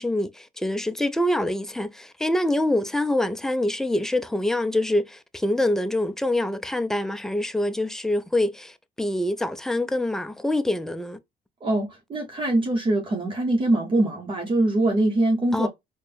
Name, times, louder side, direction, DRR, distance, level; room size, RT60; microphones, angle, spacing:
voice 1, 0.0-11.2 15.5-15.7, left 1 dB, 5° left, 0.4 m, -25 dB
voice 2, 11.6-15.7, right 2 dB, 30° right, 0.8 m, -23 dB
4.2 x 2.1 x 3.3 m
cardioid pair, 110°, 17 cm